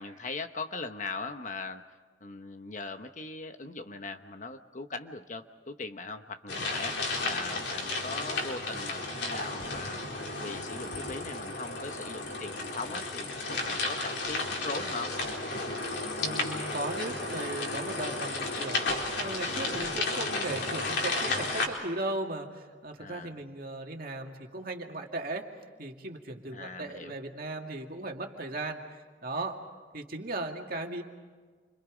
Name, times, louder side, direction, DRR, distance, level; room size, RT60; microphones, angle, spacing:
voice 1, 0.0-1.8 2.2-7.0 7.2-10.0 10.4-13.3 13.7-15.1 23.0-23.3 26.5-27.2, left 3 dB, 40° left, 7 dB, 1.0 m, -40 dB
sound 1, 6.5-21.7, left 2 dB, 65° left, 4.3 m, -33 dB
voice 2, 16.2-25.5 25.8-29.6 29.9-31.0, right 2 dB, 50° right, 2 dB, 2.4 m, -37 dB
29.0 x 26.0 x 5.2 m, 1.5 s
head